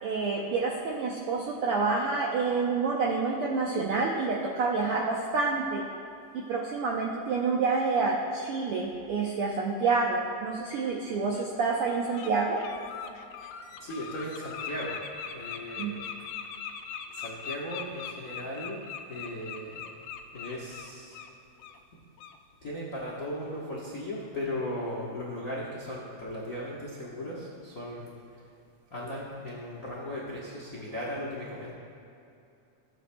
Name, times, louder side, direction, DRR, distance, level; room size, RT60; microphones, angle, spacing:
voice 1, 0.0-5.8 6.3-12.6 15.8-15.9, right 4 dB, 80° right, -2 dB, 1.3 m, -28 dB
Bird, 10.5-10.6 11.3-11.5 11.9-12.3 12.6-21.3 21.6-21.8 22.2-22.4, left 7 dB, 90° left, 1.4 m, -40 dB
voice 2, 13.8-15.0 15.3-15.9 17.1-18.8 19.1-19.8 20.3-21.2 22.6-28.1 28.9-31.7, left 1 dB, 60° left, -6 dB, 0.8 m, -37 dB
15.5 x 8.8 x 2.2 m, 2.7 s
omnidirectional pair, 3.4 m